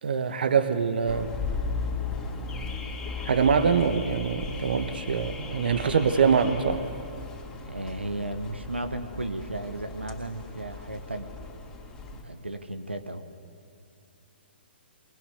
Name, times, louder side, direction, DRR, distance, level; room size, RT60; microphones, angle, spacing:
voice 1, 0.0-1.3 3.2-6.8, right 6 dB, 60° right, 10 dB, 1.3 m, -24 dB
Car / Alarm, 1.1-12.2, left 4 dB, 15° left, 3.3 m, -36 dB
voice 2, 7.6-11.3 12.1-13.2, right 1 dB, 90° right, 7 dB, 1.3 m, -34 dB
23.0 x 19.5 x 8.1 m, 2.4 s
figure-of-eight pair, 125°, 6 cm